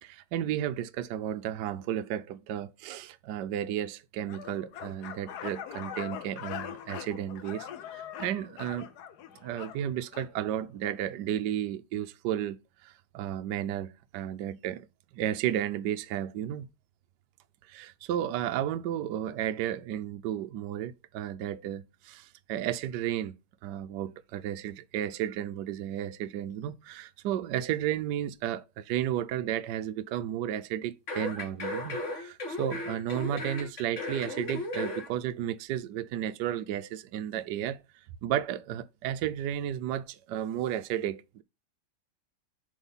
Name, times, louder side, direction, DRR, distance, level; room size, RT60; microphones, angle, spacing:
voice 1, 0.0-8.9 9.4-14.9 15.1-16.7 17.7-23.4 23.6-37.8 38.2-41.4, right 11 dB, 80° right, 1.0 m, -33 dB
sound 1, 4.3-10.3, left 10 dB, 65° left, 1.0 m, -42 dB
sound 2, 31.1-35.1 35.4-35.5, left 2 dB, 40° left, 1.6 m, -35 dB
7.4 x 3.5 x 5.6 m
omnidirectional pair, 2.4 m